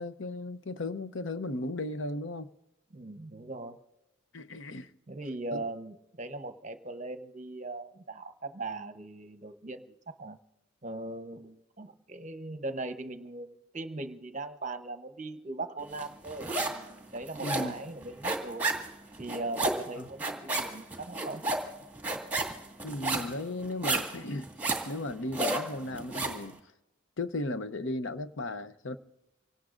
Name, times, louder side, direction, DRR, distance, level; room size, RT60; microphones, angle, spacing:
voice 1, 0.0-2.5 4.3-4.9 5.5-5.6 17.4-17.8 19.9-20.1 22.8-24.5 24.8-26.6 27.2-29.0, left 2 dB, 65° left, 0.7 m, -36 dB
voice 2, 2.9-3.8 5.1-10.4 10.8-18.7 19.2-21.4, right 2 dB, 35° right, 0.8 m, -39 dB
sound 1, 16.0-16.9 17.1-26.4, right 2 dB, 10° right, 1.9 m, -32 dB
26.5 x 18.0 x 2.5 m
head